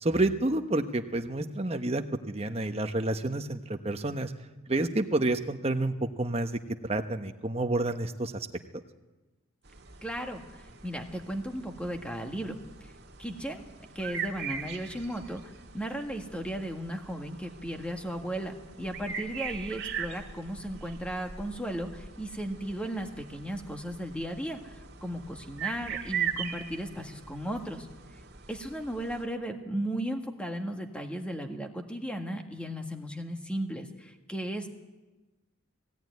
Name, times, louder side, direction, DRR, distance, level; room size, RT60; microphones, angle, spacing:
voice 1, 0.0-4.3 4.7-8.5, right 2 dB, 30° right, 7 dB, 1.0 m, -29 dB
sound 1, 9.6-29.2, right 7 dB, 50° right, 2.1 m, -41 dB
voice 2, 10.0-12.9 13.2-13.7 14.0-27.9 28.5-34.7, equal, 5° left, 4 dB, 1.7 m, -36 dB
19.0 x 17.0 x 9.4 m, 1.1 s
head